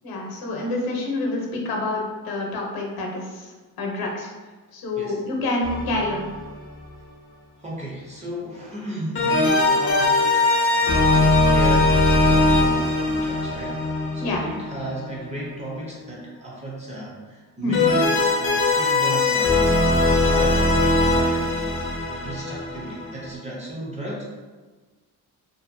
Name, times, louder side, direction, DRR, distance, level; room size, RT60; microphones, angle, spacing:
voice 1, 0.0-3.5 3.8-4.3 4.7-6.3 14.2-14.4 17.6-17.8, left 2 dB, 70° left, 0 dB, 0.7 m, -27 dB
sound 1, 5.6-6.6 9.2-15.2 17.7-23.4, left 2 dB, 35° left, 0.5 m, -20 dB
voice 2, 7.6-10.2 10.7-13.8 14.1-21.5 22.1-24.4, equal, 20° right, -5 dB, 0.5 m, -34 dB
2.6 x 2.4 x 2.5 m, 1.3 s
cardioid pair, 160°, 37 cm